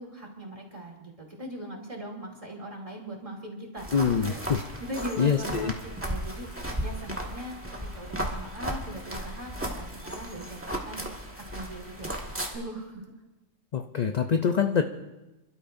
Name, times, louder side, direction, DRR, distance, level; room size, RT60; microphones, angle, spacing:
voice 1, 0.0-4.4 4.8-6.5 6.8-11.1 11.4-13.0, right 1 dB, 25° right, -1 dB, 2.8 m, -40 dB
sound 1, 3.8-12.5, equal, 10° right, 1.6 m, -35 dB
voice 2, 3.9-4.6 5.2-5.7 13.7-14.8, left 6 dB, 50° left, 6 dB, 0.5 m, -25 dB
29.5 x 12.5 x 2.6 m, 1.0 s
omnidirectional pair, 1.3 m